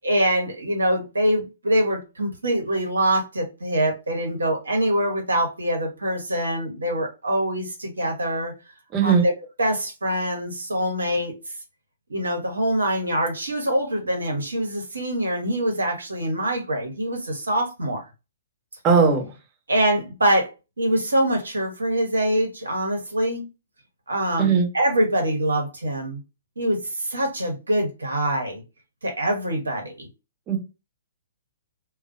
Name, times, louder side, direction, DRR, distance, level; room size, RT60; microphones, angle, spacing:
voice 1, 0.0-8.5 9.0-9.3 9.6-11.5 12.1-18.0 19.7-20.5 20.8-23.5 24.1-26.2 26.6-28.6 29.0-30.1, right 1 dB, 80° right, 0.9 m, -24 dB
voice 2, 8.9-9.2 18.8-19.3 24.4-24.7 30.5-30.6, right 5 dB, 25° right, 1.0 m, -18 dB
2.3 x 2.1 x 2.5 m
figure-of-eight pair, 120°, 0 cm